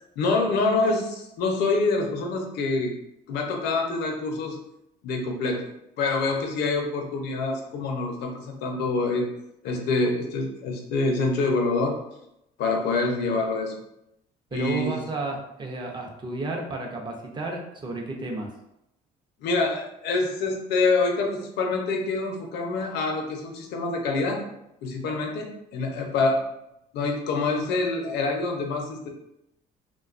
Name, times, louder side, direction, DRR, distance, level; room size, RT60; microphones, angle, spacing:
voice 1, 0.2-2.9 3.3-4.6 5.0-5.7 6.0-9.3 9.6-12.0 12.6-13.7 14.5-15.0 19.4-24.4 24.8-26.4 26.9-29.1, left 3 dB, 80° left, 2 dB, 0.6 m, -26 dB
voice 2, 14.5-18.5, right 2 dB, 25° right, 1 dB, 0.5 m, -32 dB
2.5 x 2.2 x 2.4 m, 0.82 s
cardioid pair, 110°, 17 cm